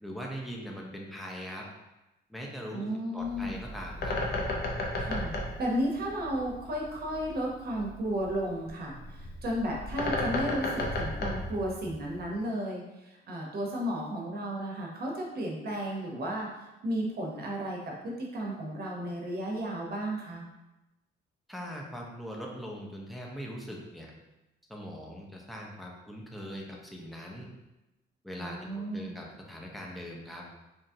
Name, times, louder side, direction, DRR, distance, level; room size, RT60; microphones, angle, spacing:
voice 1, 0.0-1.6 2.3-2.8 3.1-4.2 21.5-24.1 24.7-27.5 28.2-30.4, equal, ahead, -2 dB, 0.5 m, -41 dB
voice 2, 2.7-3.6 5.0-5.3 5.6-16.5 16.8-20.5 28.4-29.1, equal, 50° right, -1 dB, 0.8 m, -33 dB
Bird, 3.2-12.3, left 2 dB, 55° left, 0.6 m, -34 dB
2.9 x 2.3 x 2.7 m, 0.99 s
cardioid pair, 90°, 20 cm